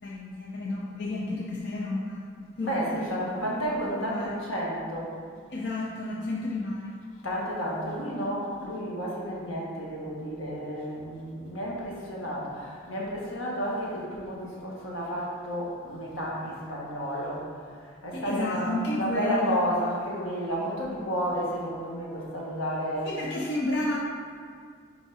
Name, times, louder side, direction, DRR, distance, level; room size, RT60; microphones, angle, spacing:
voice 1, 0.0-2.8 4.0-4.3 5.5-6.9 18.1-19.6 23.1-24.0, left 2 dB, 55° left, -4 dB, 0.6 m, -31 dB
voice 2, 2.6-5.1 7.2-23.2, equal, 80° left, -5 dB, 1.6 m, -32 dB
5.3 x 5.1 x 4.9 m, 2.1 s
head